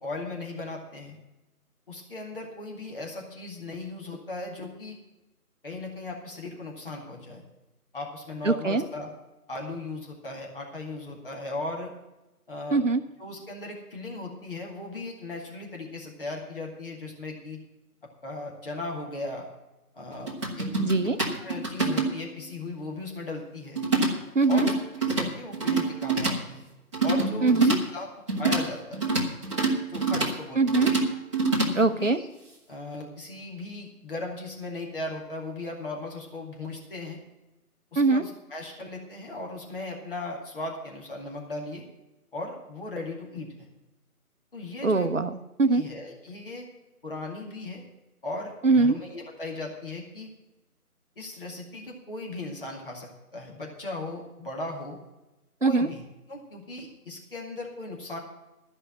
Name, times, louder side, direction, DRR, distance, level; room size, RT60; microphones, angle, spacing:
voice 1, 0.0-1.2 1.9-5.0 5.6-7.4 7.9-9.1 9.5-11.9 12.5-12.8 13.2-17.6 18.2-19.5 19.9-20.7 21.4-23.8 24.5-24.7 25.2-26.6 27.0-28.1 28.4-29.0 29.9-30.9 31.7-32.3 32.7-37.2 37.9-41.8 42.3-43.7 44.5-45.1 45.7-46.7 47.0-47.8 48.2-50.3 51.2-55.0 55.6-58.2, left 2 dB, 35° left, -1 dB, 2.3 m, -37 dB
voice 2, 8.4-8.8 12.7-13.0 20.8-21.2 24.3-24.7 27.4-27.8 30.6-30.9 31.7-32.2 38.0-38.2 44.8-45.8 48.6-49.0 55.6-55.9, right 3 dB, 55° right, 10 dB, 0.8 m, -22 dB
sound 1, 20.3-22.4 23.8-24.1 24.4-25.3 25.5-26.3 26.9-27.8 28.3-28.6 28.9-30.3 30.7-31.7, right 3 dB, 20° right, 1.6 m, -26 dB
14.0 x 5.5 x 9.0 m, 1.0 s
figure-of-eight pair, 165°, 46 cm